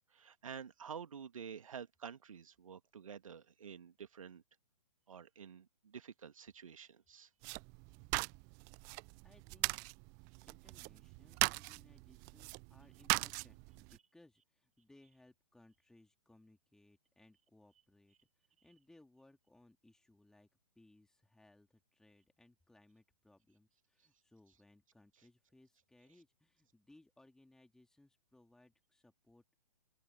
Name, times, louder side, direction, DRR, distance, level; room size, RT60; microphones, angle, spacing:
voice 1, 0.1-4.4 5.1-7.3, right 7 dB, 60° right, 2.0 m, -49 dB
sound 1, 7.4-14.0, right 34 dB, 15° right, 0.4 m, -40 dB
voice 2, 7.9-8.2 8.4-8.5 9.2-9.8 10.5-20.5 20.7-29.6, left 2 dB, 5° left, 3.4 m, -66 dB
open air
figure-of-eight pair, 120°, 20 cm